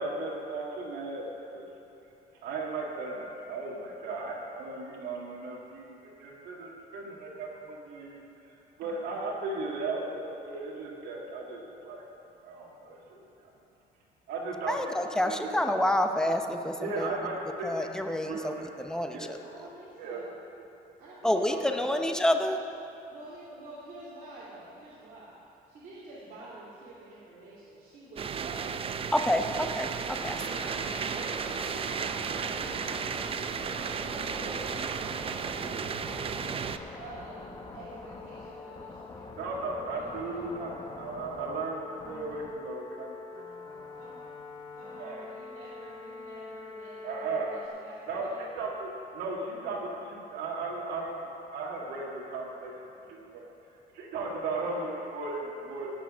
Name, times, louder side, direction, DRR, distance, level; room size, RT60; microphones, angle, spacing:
voice 1, 0.0-1.7 2.4-8.2 8.8-12.0 12.4-13.5 14.3-15.6 16.8-19.5 20.0-20.2 21.5-21.6 21.9-22.0 39.4-41.8 42.1-43.4 43.8-43.9 45.0-45.3 47.0-47.5 48.1-52.7 53.1-53.5 53.9-55.9, right 3 dB, 75° right, -3 dB, 1.9 m, -36 dB
voice 2, 14.7-17.2 17.6-18.5 18.8-19.4 21.2-22.6 29.1-29.9 30.2-30.4, left 1 dB, 5° left, 6 dB, 0.8 m, -28 dB
voice 3, 19.4-20.3 21.0-22.0 23.1-25.4 25.7-29.8 30.3-33.0 33.6-36.5 36.9-40.4 43.9-44.3 44.7-48.5 54.6-54.7, right 2 dB, 55° right, -9 dB, 2.5 m, -48 dB
sound 1, 28.2-36.8, right 6 dB, 35° right, 0.5 m, -34 dB
sound 2, 30.2-47.7, left 3 dB, 25° left, 1.1 m, -44 dB
17.0 x 5.9 x 6.3 m, 2.9 s
cardioid pair, 110°, 17 cm